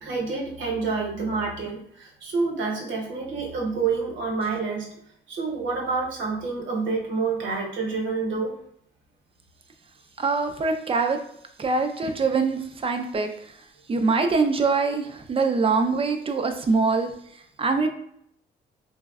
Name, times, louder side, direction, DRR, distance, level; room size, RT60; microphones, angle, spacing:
voice 1, 0.0-4.9 5.3-8.6, right 4 dB, 70° right, -1 dB, 0.9 m, -28 dB
voice 2, 10.2-11.2 11.6-13.3 13.9-17.1 17.6-17.9, right 4 dB, 30° right, 6 dB, 0.4 m, -23 dB
3.3 x 2.1 x 2.3 m, 0.70 s
cardioid pair, 90°, 20 cm